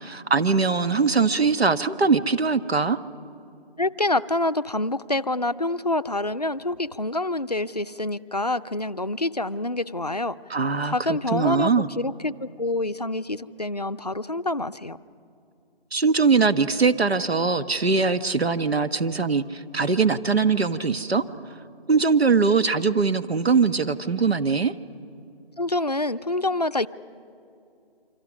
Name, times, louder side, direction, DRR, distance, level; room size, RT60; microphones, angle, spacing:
voice 1, 0.0-3.0 10.5-11.9 15.9-21.2 21.9-24.7, right 4 dB, 80° right, 11 dB, 1.3 m, -22 dB
voice 2, 3.8-10.4 10.9-15.0 25.6-26.9, left 2 dB, 40° left, 12 dB, 0.5 m, -26 dB
28.5 x 25.0 x 6.2 m, 2.6 s
figure-of-eight pair, 175°, 30 cm